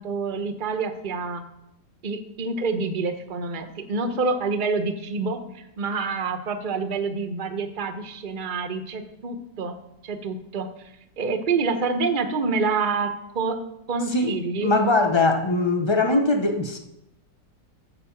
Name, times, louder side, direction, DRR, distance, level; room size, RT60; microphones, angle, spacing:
voice 1, 0.0-1.4 2.0-9.8 10.0-10.7 11.2-13.1 13.3-13.6 13.9-14.7, right 4 dB, 35° right, 0.8 m, -27 dB
voice 2, 14.6-16.8, left 2 dB, 50° left, 0.3 m, -21 dB
9.4 x 7.0 x 7.2 m
omnidirectional pair, 1.9 m